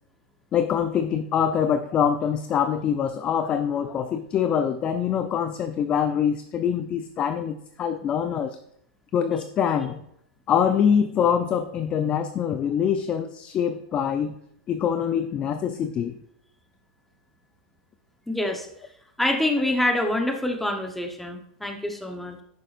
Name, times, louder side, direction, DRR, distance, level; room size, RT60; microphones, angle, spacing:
voice 1, 0.5-8.6 9.1-10.0 10.5-14.3 14.7-16.2, left 8 dB, 20° left, 9 dB, 0.4 m, -24 dB
voice 2, 18.3-18.7 19.2-22.4, left 1 dB, 5° left, 4 dB, 0.9 m, -26 dB
11.0 x 9.2 x 2.5 m, 0.73 s
supercardioid pair, 155°, 5 cm